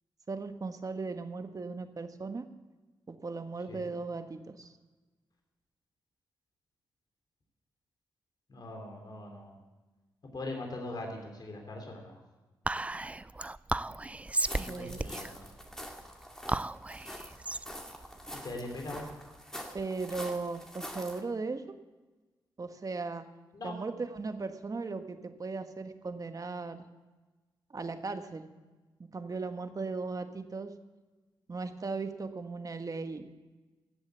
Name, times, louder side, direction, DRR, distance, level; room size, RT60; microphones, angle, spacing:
voice 1, 0.3-2.4 3.1-4.7 14.6-15.0 19.7-21.6 22.6-23.3 23.6-26.8 27.7-28.4 29.1-30.7 31.5-33.3, right 4 dB, 40° right, 8 dB, 1.3 m, -37 dB
voice 2, 8.5-9.6 10.3-12.2 14.6-15.5 18.4-19.1 23.5-23.8, left 2 dB, 50° left, 1 dB, 3.4 m, -41 dB
Whispering, 12.7-19.3, right 2 dB, 15° right, 0.4 m, -35 dB
sound 1, 14.3-21.2, equal, 5° left, 2.1 m, -45 dB
14.0 x 7.9 x 8.1 m, 1.2 s
cardioid pair, 60°, 9 cm